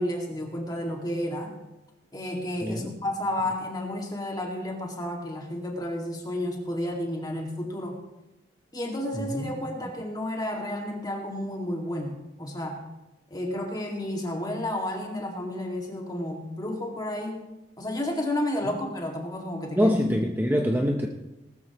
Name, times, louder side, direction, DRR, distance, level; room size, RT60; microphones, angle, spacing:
voice 1, 0.0-1.5 2.1-8.0 8.7-12.8 13.3-17.5 17.8-19.9, left 1 dB, 20° left, 1 dB, 2.2 m, -31 dB
voice 2, 2.6-2.9 9.1-9.5 18.6-18.8 19.7-21.1, equal, 10° right, 2 dB, 0.7 m, -25 dB
18.5 x 13.0 x 3.1 m, 1.0 s
head